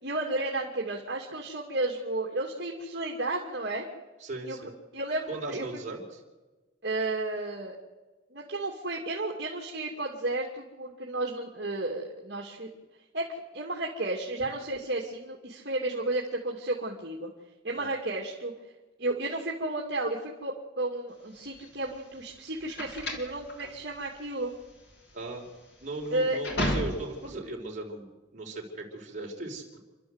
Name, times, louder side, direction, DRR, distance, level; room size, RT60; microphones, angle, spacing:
voice 1, 0.0-3.9 4.4-4.6 4.9-5.7 6.8-7.8 8.3-12.7 13.1-17.3 17.6-18.5 19.0-24.5 26.1-26.4, right 2 dB, 55° right, -1 dB, 2.5 m, -32 dB
voice 2, 4.2-4.7 5.3-6.2 17.7-17.9 25.1-25.5 25.8-28.1 28.3-29.6, right 2 dB, 40° right, -2 dB, 4.7 m, -37 dB
sound 1, 21.4-27.4, equal, 60° left, 3.5 m, -34 dB
29.0 x 12.5 x 8.1 m, 1.2 s
head